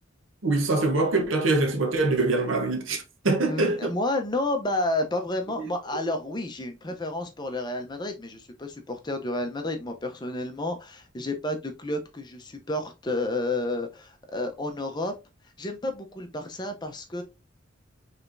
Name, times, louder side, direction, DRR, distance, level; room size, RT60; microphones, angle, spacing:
voice 1, 0.4-3.9 5.6-5.7, right 2 dB, 75° right, 0.9 m, -24 dB
voice 2, 3.4-15.1 15.6-17.2, left 2 dB, 20° left, 0.6 m, -30 dB
4.9 x 3.3 x 2.6 m
head